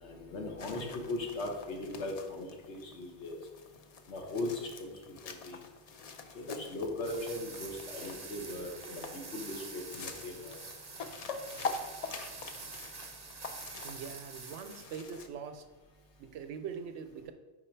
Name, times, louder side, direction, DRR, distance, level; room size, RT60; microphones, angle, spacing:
voice 1, 0.0-3.4 4.1-4.9 5.2-5.6 6.3-9.0 9.3-10.6, left 2 dB, 75° left, 1 dB, 1.3 m, -38 dB
sound 1, 0.6-15.3, left 4 dB, 55° left, 0.4 m, -45 dB
sound 2, 7.0-15.1, right 3 dB, 30° right, 0.5 m, -46 dB
voice 2, 13.8-15.6 16.2-17.3, right 6 dB, 85° right, 8 dB, 0.9 m, -42 dB
5.1 x 4.3 x 4.4 m, 1.2 s
omnidirectional pair, 1.2 m